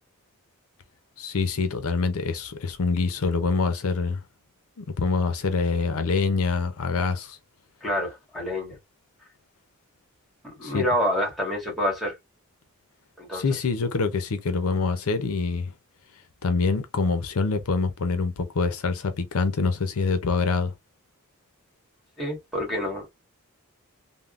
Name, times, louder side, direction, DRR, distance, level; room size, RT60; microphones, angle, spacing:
voice 1, 1.2-4.2 4.8-7.4 10.6-10.9 13.3-15.7 16.4-20.7, left 4 dB, 75° left, 0.6 m, -25 dB
voice 2, 7.8-8.8 10.4-12.2 13.2-13.4 22.2-23.1, equal, ahead, 1.5 m, -27 dB
3.5 x 2.1 x 2.4 m
head